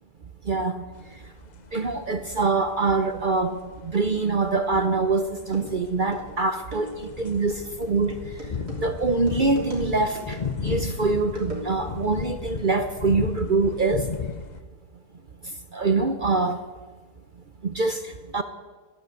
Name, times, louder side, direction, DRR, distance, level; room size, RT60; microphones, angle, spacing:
voice 1, 0.4-0.8 1.7-8.2 8.8-14.1 15.4-16.6 17.6-18.4, right 3 dB, 50° right, 9 dB, 0.6 m, -24 dB
sound 1, 1.0-14.6, left 5 dB, 45° left, 0.5 m, -35 dB
sound 2, 4.9-5.0 5.4-12.1, right 1 dB, 65° right, 3.9 m, -40 dB
13.5 x 11.5 x 8.1 m, 1.3 s
omnidirectional pair, 1.8 m